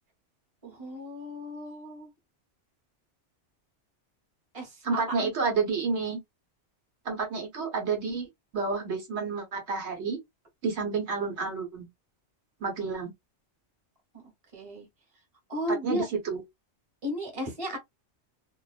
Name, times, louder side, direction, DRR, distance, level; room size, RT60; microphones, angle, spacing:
voice 1, 0.6-2.1 4.5-5.3 14.5-14.9 15.5-16.1 17.0-17.8, equal, 30° right, 1.1 m, -34 dB
voice 2, 4.8-6.2 7.0-8.3 8.5-10.2 10.6-11.9 12.6-13.1 15.7-16.4, right 4 dB, 70° right, 1.2 m, -30 dB
2.5 x 2.2 x 2.3 m
omnidirectional pair, 1.2 m